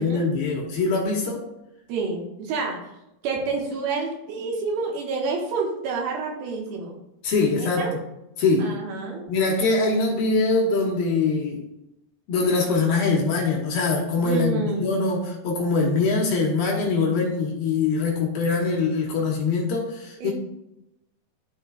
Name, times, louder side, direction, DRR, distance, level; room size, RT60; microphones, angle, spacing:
voice 1, 0.0-1.4 7.2-7.9 8.4-8.8 9.3-11.6 12.3-20.3, left 3 dB, 70° left, -2 dB, 2.6 m, -23 dB
voice 2, 1.9-2.9 3.2-7.0 7.6-7.9 8.6-9.3 14.2-14.9 20.2-20.3, right 4 dB, 70° right, 0 dB, 2.7 m, -28 dB
12.5 x 4.3 x 2.2 m, 0.89 s
omnidirectional pair, 4.8 m